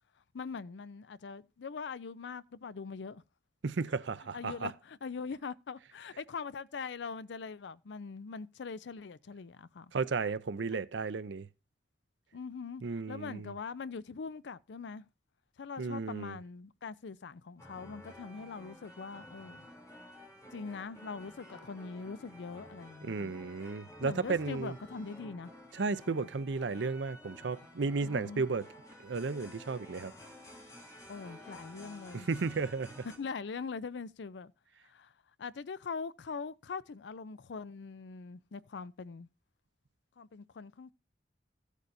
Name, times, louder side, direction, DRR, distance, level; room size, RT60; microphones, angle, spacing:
voice 1, 0.3-3.2 4.3-9.9 12.3-15.1 15.6-19.6 20.5-23.3 24.0-25.5 26.1-26.3 26.7-26.8 28.0-28.5 31.1-32.3 33.2-34.5 34.8-35.1 35.4-39.3 40.2-40.9, left 5 dB, 75° left, 0.5 m, -42 dB
voice 2, 3.6-4.7 9.9-11.5 12.8-13.5 15.8-16.4 23.0-24.8 25.7-28.6 29.0-30.1 32.1-33.1, right 4 dB, 90° right, 0.6 m, -34 dB
sound 1, 17.6-33.2, left 1 dB, 20° left, 3.2 m, -52 dB
15.0 x 8.2 x 2.6 m
head